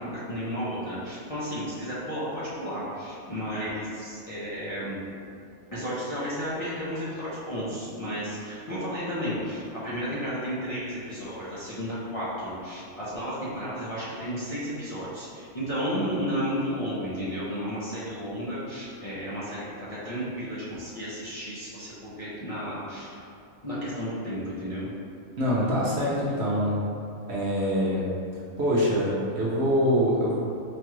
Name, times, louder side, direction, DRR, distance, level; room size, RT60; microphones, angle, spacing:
voice 1, 0.0-5.0 5.7-23.1 23.6-24.9, equal, 40° left, -11 dB, 0.5 m, -33 dB
voice 2, 25.4-26.8 27.3-28.0 28.6-30.4, equal, 60° right, -6 dB, 0.8 m, -24 dB
5.1 x 2.3 x 3.0 m, 2.4 s
omnidirectional pair, 1.5 m